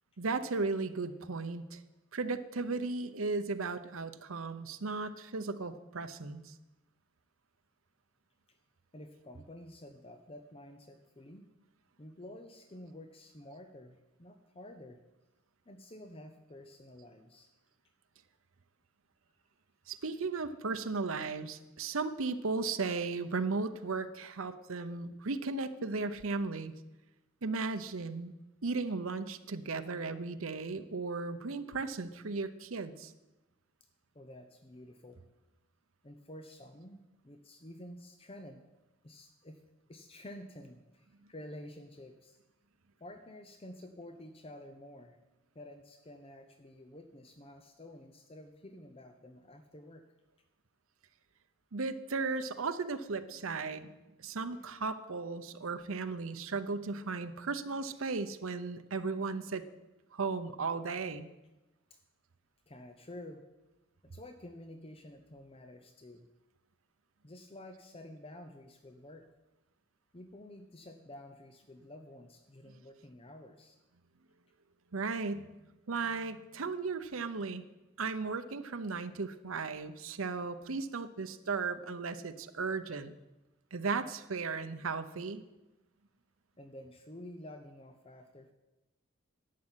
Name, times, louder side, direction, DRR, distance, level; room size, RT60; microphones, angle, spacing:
voice 1, 0.2-1.8 2.1-6.5 19.9-26.7 27.4-28.3 28.6-33.1 51.7-53.9 54.2-59.6 60.1-61.3 74.9-75.5 75.9-77.6 78.0-83.1 83.7-85.4, right 4 dB, 75° right, 9 dB, 0.8 m, -36 dB
voice 2, 8.9-11.4 12.0-15.0 15.7-17.5 34.1-35.2 36.0-38.6 39.0-39.6 39.9-42.4 43.0-45.2 45.5-50.0 61.9-62.0 62.7-63.4 64.0-66.3 67.2-69.3 70.1-73.8 86.6-88.5, left 1 dB, 25° left, 6 dB, 0.8 m, -50 dB
11.5 x 7.5 x 9.7 m, 1.0 s
head